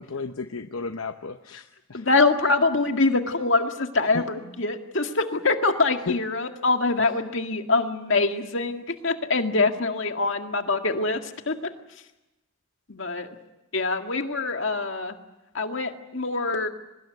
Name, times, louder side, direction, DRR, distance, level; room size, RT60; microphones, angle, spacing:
voice 1, 0.0-2.1 4.1-4.2 6.1-6.2, left 4 dB, 80° left, 7 dB, 0.9 m, -33 dB
voice 2, 1.9-11.2 11.5-11.7 12.9-13.3 13.7-15.2 15.5-16.7, left 3 dB, 65° left, 5 dB, 2.0 m, -24 dB
23.5 x 20.5 x 9.4 m, 0.97 s
head